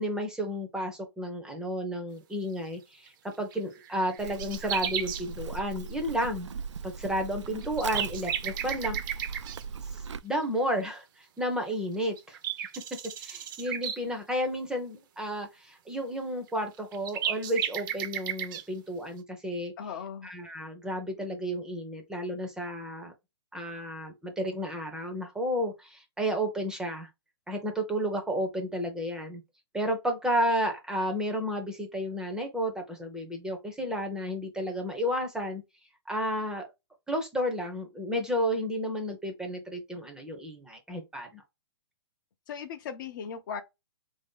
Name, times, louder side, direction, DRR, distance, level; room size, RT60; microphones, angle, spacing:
voice 1, 0.0-6.5 6.8-9.3 9.9-12.4 13.2-19.7 20.2-23.1 23.5-27.1 27.5-29.4 29.7-35.6 36.1-36.7 37.1-41.4, equal, 5° right, 0.6 m, -32 dB
sound 1, 3.1-3.2 3.5-3.6 3.8-5.2 7.1-7.2 7.6-9.6 11.7-11.8 12.2-14.0 16.5-16.6 16.8-18.6, right 9 dB, 45° right, 0.6 m, -34 dB
Livestock farm animals working animals, 4.2-10.2, right 5 dB, 90° right, 0.4 m, -39 dB
voice 2, 19.8-20.3 42.5-43.6, left 7 dB, 45° left, 0.6 m, -37 dB
3.2 x 2.7 x 3.6 m
hypercardioid pair, 140°, 15 cm